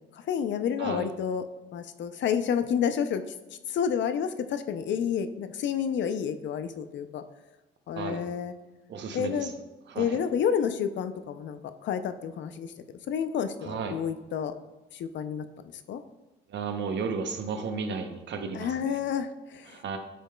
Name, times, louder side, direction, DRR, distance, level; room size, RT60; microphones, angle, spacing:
voice 1, 0.3-1.4 1.7-3.2 3.7-7.2 7.9-8.5 9.1-9.5 10.0-12.7 13.1-14.5 14.9-16.0 18.5-19.8, left 8 dB, 65° left, 10 dB, 0.5 m, -30 dB
voice 2, 8.9-9.5 9.9-10.2 13.6-14.0 16.5-19.0 19.7-20.0, right 5 dB, 65° right, 6 dB, 0.8 m, -33 dB
8.6 x 5.1 x 2.3 m, 1.2 s
cardioid pair, 90°, 20 cm